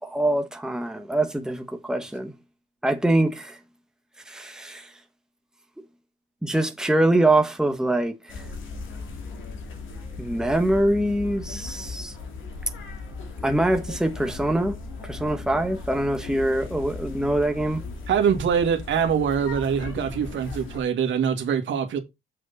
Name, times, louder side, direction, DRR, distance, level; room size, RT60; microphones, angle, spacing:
voice 1, 0.0-2.3 2.8-3.6 4.3-4.9 6.4-8.5 10.2-12.1 13.4-14.7 15.0-17.8, right 1 dB, 5° right, 1.3 m, -24 dB
sound 1, 8.3-20.8, left 4 dB, 80° left, 2.9 m, -37 dB
voice 2, 18.1-22.0, right 7 dB, 70° right, 2.1 m, -24 dB
7.6 x 6.4 x 4.2 m
cardioid pair, 90°, 20 cm